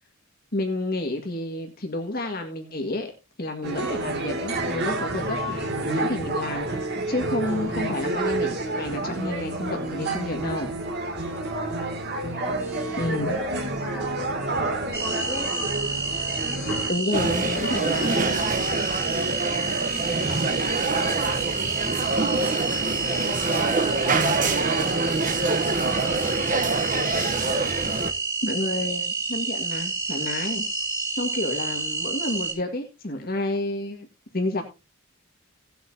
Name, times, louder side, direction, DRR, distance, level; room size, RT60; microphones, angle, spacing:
voice 1, 0.5-3.1 3.4-10.8 13.0-13.4 16.9-18.3 28.4-30.6 31.2-34.1 34.3-34.6, left 1 dB, 45° left, 3 dB, 1.9 m, -30 dB
sound 1, 3.6-16.9, right 2 dB, 55° right, 2.5 m, -29 dB
voice 2, 11.6-11.9 12.3-15.8 22.2-26.5, right 1 dB, 10° right, -2 dB, 5.6 m, -39 dB
sound 2, 14.9-32.5, right 3 dB, 15° left, 6.9 m, -29 dB
sound 3, 17.1-28.1, right 3 dB, 40° right, 1.0 m, -25 dB
18.0 x 7.9 x 2.8 m, 0.28 s
head